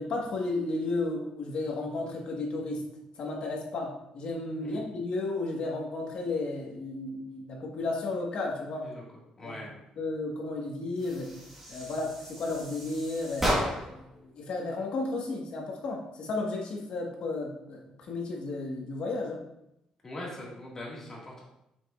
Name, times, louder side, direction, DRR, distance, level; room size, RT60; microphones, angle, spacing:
voice 1, 0.0-2.8 3.2-8.9 9.4-9.6 10.0-11.3 11.7-19.4, left 2 dB, 55° left, 0 dB, 1.4 m, -33 dB
voice 2, 9.4-9.7 20.0-21.4, left 1 dB, 20° left, -4 dB, 1.9 m, -41 dB
sound 1, 11.0-14.1, equal, 10° right, 1.5 m, -33 dB
7.3 x 6.1 x 2.5 m, 0.83 s
cardioid pair, 155°, 2 cm